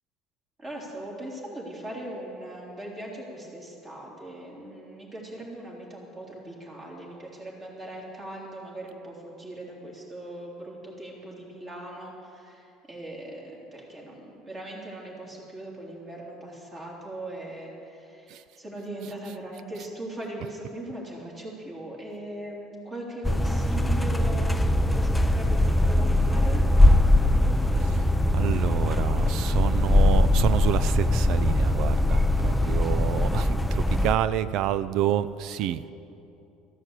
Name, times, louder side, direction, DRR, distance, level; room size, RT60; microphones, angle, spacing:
voice 1, 0.6-26.6, right 1 dB, 25° right, -3 dB, 3.5 m, -39 dB
sound 1, 23.2-34.1, left 1 dB, 5° left, 0.6 m, -21 dB
voice 2, 28.3-35.8, right 11 dB, 60° right, 15 dB, 0.4 m, -28 dB
13.5 x 11.0 x 8.2 m, 2.8 s
cardioid pair, 135°, 0 cm